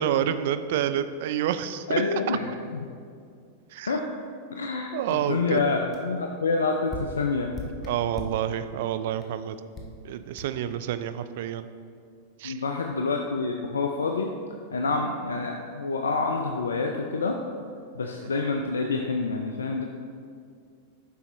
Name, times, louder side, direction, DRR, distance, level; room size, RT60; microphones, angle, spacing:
voice 1, 0.0-1.9 2.3-2.4 3.7-3.9 4.9-5.6 7.8-9.6 10.0-11.7 12.4-12.5 18.2-18.3, right 10 dB, 65° right, 12 dB, 0.3 m, -28 dB
voice 2, 1.9-2.5 3.9-4.0 4.5-7.5 12.4-14.3 14.7-17.4 18.0-19.8, left 4 dB, 85° left, 3 dB, 0.4 m, -27 dB
sound 1, 5.1-5.2 5.6-5.7 5.9-6.1 6.9-8.5 9.2-9.3 9.7-10.0 10.4-10.5, left 2 dB, 25° left, 1.1 m, -38 dB
8.0 x 5.5 x 3.1 m, 2.3 s
hypercardioid pair, 100°, 0 cm